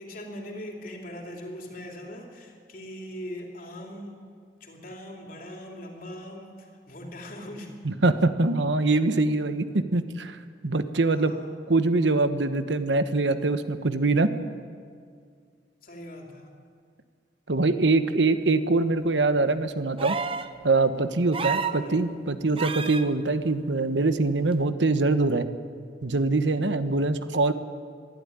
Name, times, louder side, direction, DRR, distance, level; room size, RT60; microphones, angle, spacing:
voice 1, 0.0-4.2 4.6-7.8 11.1-11.5 15.8-16.5 21.5-22.1, equal, 50° left, 1 dB, 3.3 m, -41 dB
voice 2, 7.8-10.4 10.6-11.3 11.7-14.3 17.5-20.2 20.6-25.4 26.0-27.5, right 3 dB, 90° right, 10 dB, 1.1 m, -23 dB
sound 1, 20.0-20.5 21.3-21.8 22.6-23.0 24.5-24.6, right 5 dB, 30° right, 0.8 m, -29 dB
23.0 x 12.0 x 9.8 m, 2.1 s
head